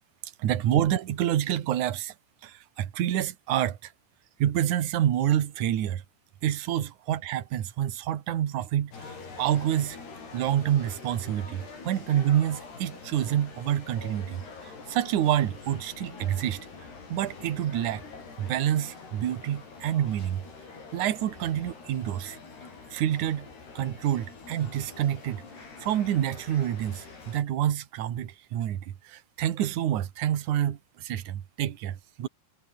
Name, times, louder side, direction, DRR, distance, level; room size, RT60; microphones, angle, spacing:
voice 1, 0.2-2.1 2.4-3.9 4.4-6.0 6.4-10.0 10.3-16.6 17.1-18.0 18.4-20.4 20.9-22.4 22.9-23.5 23.7-25.4 25.8-32.3, right 11 dB, 55° right, 2.4 m, -28 dB
sound 1, 8.9-27.4, left 4 dB, 60° left, 9.6 m, -45 dB
omnidirectional pair, 5.2 m